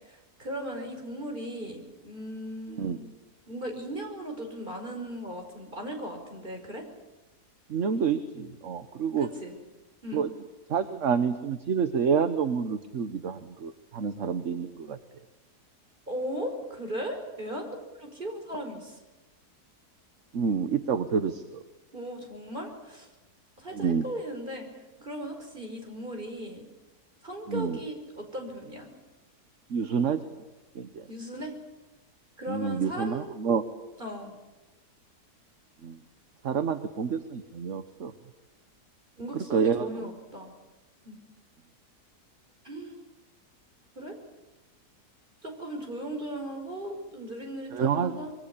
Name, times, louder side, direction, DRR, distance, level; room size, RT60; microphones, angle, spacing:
voice 1, 0.1-3.0 3.5-6.8 9.2-9.6 10.0-10.2 16.1-19.0 21.1-21.2 21.9-23.1 23.6-24.7 25.0-26.7 27.2-28.9 31.1-31.5 32.4-33.3 34.0-34.3 39.2-40.5 41.0-41.2 42.6-43.0 44.0-44.2 45.4-48.3, equal, 30° right, 3 dB, 5.3 m, -37 dB
voice 2, 7.7-9.3 10.1-10.3 10.7-15.0 20.3-21.6 23.7-24.1 27.5-27.8 29.7-30.2 30.7-31.1 32.5-33.6 35.8-36.0 36.4-38.1 39.5-40.0 47.7-48.2, right 6 dB, 55° right, 10 dB, 1.4 m, -28 dB
26.0 x 22.5 x 8.4 m, 1.1 s
omnidirectional pair, 1.7 m